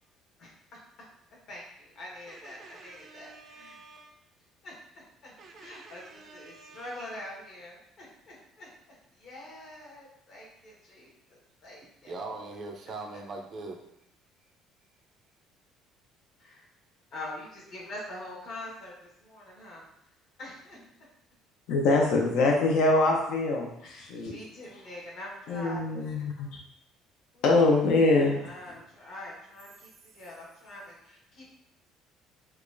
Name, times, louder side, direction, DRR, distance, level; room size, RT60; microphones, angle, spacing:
voice 1, 0.4-0.8 1.5-1.6 1.9-3.8 4.6-12.1 16.4-16.7 17.1-19.8 20.4-20.8 23.8-26.0 27.3-27.6 28.4-29.9 30.1-31.5, left 1 dB, 45° left, -4 dB, 1.2 m, -45 dB
voice 2, 2.3-4.1 5.4-7.2 12.1-13.8 20.7-20.9, right 3 dB, 30° right, 2 dB, 0.4 m, -43 dB
voice 3, 21.7-24.4 25.5-26.5 27.4-28.4, left 2 dB, 65° left, 0 dB, 0.5 m, -24 dB
4.6 x 2.3 x 2.5 m, 0.77 s
cardioid pair, 175°, 0 cm